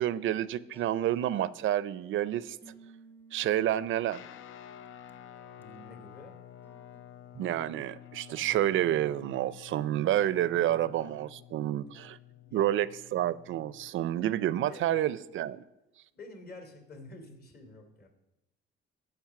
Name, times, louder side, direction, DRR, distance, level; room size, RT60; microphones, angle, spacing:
voice 1, 0.0-2.6 3.3-4.2 7.4-12.2 12.5-15.6, right 12 dB, 70° right, 17 dB, 0.5 m, -29 dB
sound 1, 0.7-4.3 4.9-5.1 5.6-5.9 6.6-7.0, right 3 dB, 10° left, 0.7 m, -58 dB
Guitar, 4.1-13.9, left 11 dB, 70° left, 0.5 m, -51 dB
voice 2, 5.6-6.4 10.5-10.8 12.4-12.7 14.7-15.0 16.1-18.1, left 2 dB, 50° left, 5 dB, 2.8 m, -49 dB
15.0 x 5.2 x 5.9 m, 0.93 s
cardioid pair, 100°, 21 cm